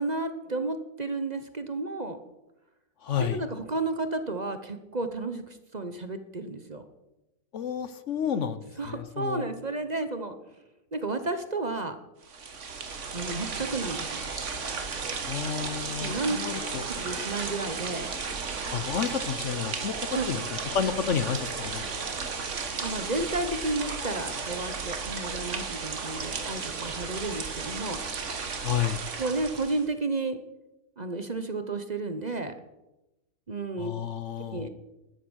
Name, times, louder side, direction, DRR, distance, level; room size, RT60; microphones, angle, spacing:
voice 1, 0.0-2.2 3.2-6.8 8.8-10.3 10.9-12.0 13.1-14.2 16.0-16.4 16.8-18.1 20.1-20.4 22.8-28.0 29.2-30.4 31.0-32.5 33.5-33.9 34.5-34.7, right 2 dB, 30° right, 9 dB, 0.9 m, -32 dB
voice 2, 3.0-3.4 7.5-9.5 15.3-16.8 18.7-19.9 20.3-21.9 28.6-29.0 33.8-34.7, left 8 dB, 55° left, 13 dB, 1.0 m, -31 dB
sound 1, 12.2-29.9, right 5 dB, 50° right, 1.7 m, -34 dB
sound 2, 14.0-23.7, right 2 dB, 70° right, 2.1 m, -50 dB
13.5 x 11.5 x 6.3 m, 0.98 s
omnidirectional pair, 1.7 m